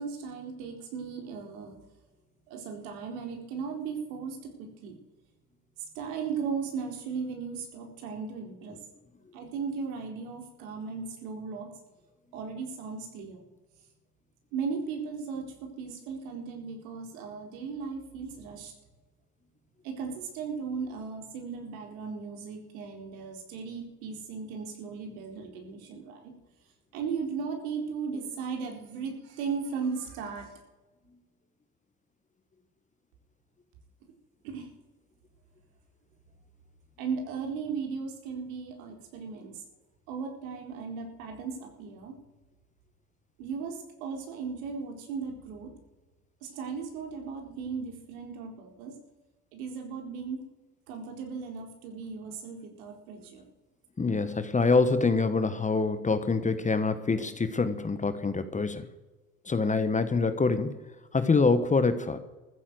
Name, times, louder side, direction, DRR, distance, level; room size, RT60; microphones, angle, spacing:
voice 1, 0.0-1.8 2.5-5.0 6.0-8.8 9.3-11.7 12.3-13.4 14.5-18.7 19.8-26.3 26.9-30.6 34.4-34.7 37.0-39.6 40.1-42.1 43.4-45.7 46.4-48.9 49.5-50.4 50.9-53.5, right 5 dB, 70° right, 3 dB, 4.2 m, -36 dB
voice 2, 54.0-58.9 59.5-60.8 61.1-62.2, left 4 dB, 15° left, 11 dB, 1.3 m, -25 dB
14.5 x 9.8 x 7.8 m, 1.2 s
hypercardioid pair, 80°, 43 cm